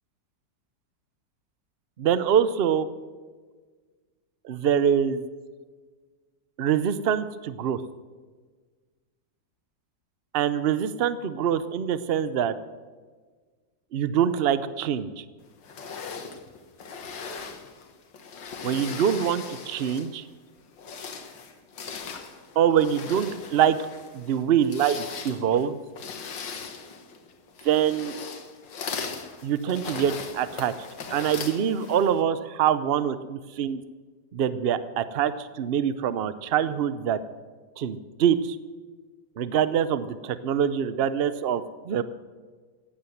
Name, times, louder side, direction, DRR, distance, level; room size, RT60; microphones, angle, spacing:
voice 1, 2.0-2.9 4.4-5.2 6.6-7.8 10.3-12.5 13.9-15.2 18.6-20.2 22.6-23.8 24.1-25.8 27.6-28.1 29.4-30.7 31.1-33.1 33.6-33.8 34.3-34.8 35.2-37.2 37.8-38.6 39.4-42.0, right 9 dB, 80° right, 14 dB, 0.5 m, -24 dB
sound 1, 15.6-20.2 20.7-32.2, left 5 dB, 80° left, 2.1 m, -39 dB
15.5 x 10.0 x 7.9 m, 1.4 s
omnidirectional pair, 2.0 m